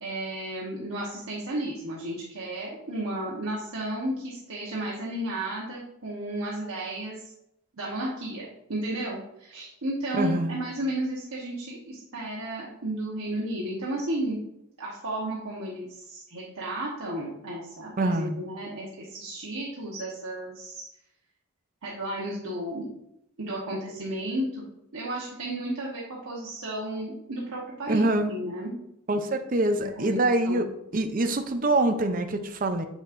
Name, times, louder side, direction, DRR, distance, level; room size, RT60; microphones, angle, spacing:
voice 1, 0.0-7.2 7.7-14.4 14.8-20.8 21.8-22.9 23.4-24.6 24.9-28.8 29.7-30.6, right 1 dB, 80° right, -4 dB, 1.2 m, -33 dB
voice 2, 10.1-10.6 18.0-18.4 27.9-28.3 29.1-30.7 30.9-32.8, right 2 dB, 40° right, 7 dB, 0.5 m, -25 dB
7.3 x 6.2 x 2.6 m, 0.81 s
head